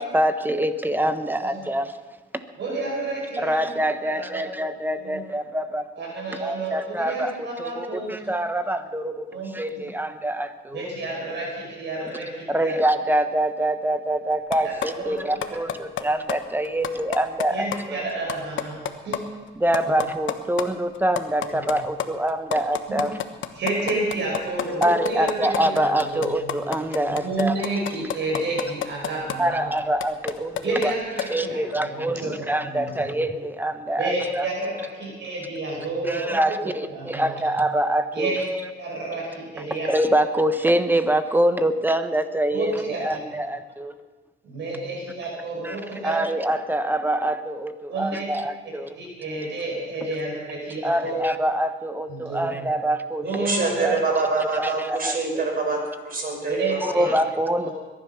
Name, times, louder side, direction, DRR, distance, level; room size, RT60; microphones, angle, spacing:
voice 1, 0.0-2.0 2.3-2.4 3.4-5.9 6.4-9.3 9.5-10.8 12.5-18.0 19.6-23.2 24.8-27.5 29.4-30.9 31.3-34.4 36.0-38.4 39.9-43.9 45.6-45.8 46.0-48.9 50.8-53.5 53.8-54.0 54.4-55.4 56.8-57.7, right 1 dB, 10° right, 10 dB, 1.1 m, -25 dB
voice 2, 2.6-3.7 4.0-4.4 5.0-5.2 6.0-8.1 9.3-9.9 10.7-12.8 14.6-14.7 15.0-15.2 17.5-19.2 21.5-21.6 22.9-23.0 23.5-26.4 27.2-29.7 30.6-33.1 34.0-37.4 38.1-38.5 38.7-39.9 42.5-43.2 44.4-46.2 47.9-48.3 49.0-51.2 52.1-52.5 53.2-54.0 56.5-57.1 57.6-57.7, right 2 dB, 65° right, -2 dB, 6.1 m, -30 dB
sound 1, 14.5-14.9 15.2-16.0 16.3-16.4 16.7-17.5 17.7-17.8 18.1-19.2 19.5-19.6 19.7-20.6 21.0-29.4 29.8-30.9 31.2-31.3, left 11 dB, 75° left, 1.2 m, -28 dB
voice 3, 53.5-55.8 56.0-57.2, right 3 dB, 45° right, 1 dB, 6.1 m, -25 dB
22.0 x 11.0 x 5.9 m, 1.3 s
cardioid pair, 90°, 20 cm